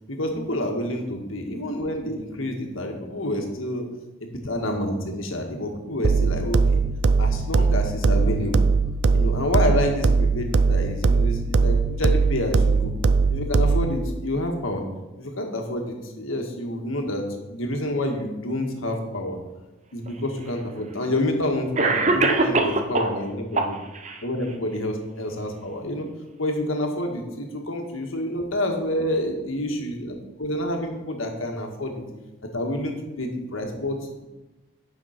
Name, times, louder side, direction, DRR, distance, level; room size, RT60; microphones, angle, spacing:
voice 1, 0.1-3.8 4.2-6.8 7.2-8.7 9.1-12.9 13.3-14.8 15.2-19.4 19.9-23.8 24.2-26.1 26.4-32.0 32.5-34.0, left 1 dB, 80° left, 3 dB, 1.6 m, -28 dB
sound 1, 6.0-14.0, right 4 dB, 55° right, 0.4 m, -20 dB
Cough, 20.1-20.2 21.2-21.3 21.8-23.2 23.5-24.2, right 3 dB, 35° right, 0.7 m, -22 dB
9.4 x 5.8 x 5.8 m, 1.1 s
head